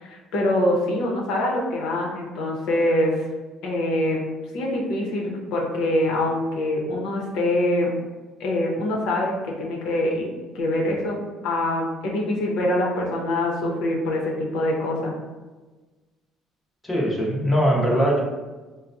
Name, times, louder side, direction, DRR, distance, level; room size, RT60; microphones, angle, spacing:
voice 1, 0.0-3.3 3.6-4.2 4.5-7.9 8.4-10.3 10.5-11.2 11.4-15.1, left 1 dB, 75° left, -1 dB, 0.8 m, -24 dB
voice 2, 16.8-18.2, equal, 10° left, -4 dB, 0.8 m, -21 dB
4.5 x 2.1 x 2.6 m, 1.3 s
cardioid pair, 125°, 0 cm